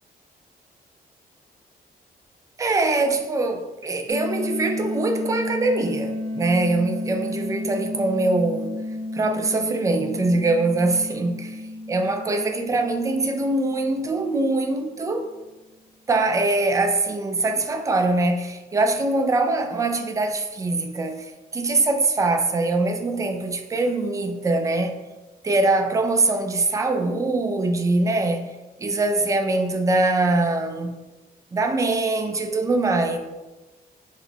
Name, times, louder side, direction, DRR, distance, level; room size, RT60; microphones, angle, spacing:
voice 1, 2.6-8.7 9.1-11.6 11.9-15.3 16.1-21.3 21.5-24.9 25.4-28.5 28.8-30.9 31.5-33.2, right 2 dB, 20° right, 0.3 m, -23 dB
sound 1, 4.1-14.8, left 1 dB, 75° right, 1.3 m, -32 dB
5.9 x 2.0 x 2.8 m
wide cardioid pair, 155°, 17 cm